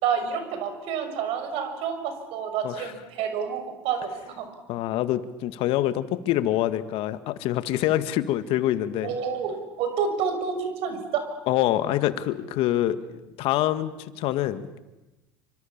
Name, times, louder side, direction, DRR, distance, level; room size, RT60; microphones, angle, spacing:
voice 1, 0.0-4.5 9.0-11.2, right 7 dB, 65° right, 7 dB, 6.5 m, -29 dB
voice 2, 4.7-9.2 11.5-14.8, left 13 dB, 60° left, 11 dB, 1.8 m, -26 dB
28.5 x 25.0 x 7.4 m, 1.0 s
hypercardioid pair, 80°, 10 cm